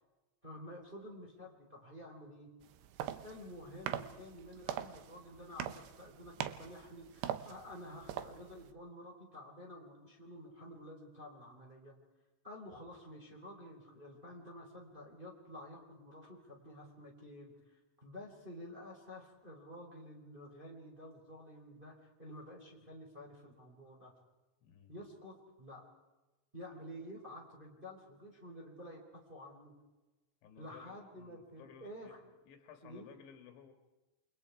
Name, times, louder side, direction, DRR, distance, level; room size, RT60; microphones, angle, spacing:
voice 1, 0.4-2.5 3.2-11.9 12.4-24.1 24.9-25.8 26.5-29.0 29.3-29.7 30.6-32.2 32.8-33.1, left 1 dB, 10° right, -1 dB, 3.4 m, -51 dB
sound 1, 2.6-8.7, right 11 dB, 75° right, 2.7 m, -43 dB
voice 2, 24.6-24.9 30.4-33.7, left 8 dB, 70° left, 7 dB, 3.8 m, -57 dB
29.0 x 25.0 x 4.7 m, 1.1 s
omnidirectional pair, 5.9 m